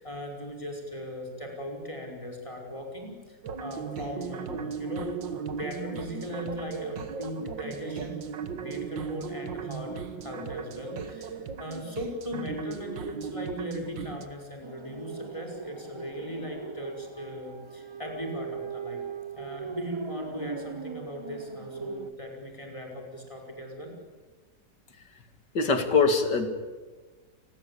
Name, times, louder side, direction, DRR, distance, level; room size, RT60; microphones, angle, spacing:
voice 1, 0.0-9.9 10.2-19.0 19.4-24.0, equal, 15° left, 2 dB, 5.6 m, -38 dB
sound 1, 3.4-14.3, right 6 dB, 90° right, 2.1 m, -37 dB
sound 2, 14.6-22.1, right 5 dB, 30° right, 0.5 m, -40 dB
voice 2, 25.5-26.5, left 4 dB, 70° left, 8 dB, 2.9 m, -22 dB
29.0 x 21.0 x 8.7 m, 1.3 s
omnidirectional pair, 1.9 m